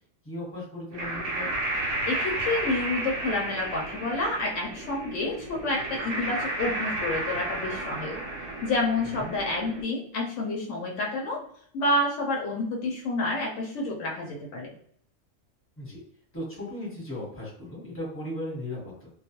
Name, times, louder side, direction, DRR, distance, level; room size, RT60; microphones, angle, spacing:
voice 1, 0.2-1.6 9.0-9.3 15.8-16.0 16.3-19.1, left 1 dB, 10° left, -5 dB, 0.9 m, -37 dB
sound 1, 0.9-9.8, right 2 dB, 75° right, 0.9 m, -32 dB
voice 2, 2.1-8.2 8.6-11.4 11.7-14.8, left 2 dB, 75° left, 0 dB, 0.9 m, -29 dB
2.3 x 2.2 x 2.8 m, 0.63 s
omnidirectional pair, 1.3 m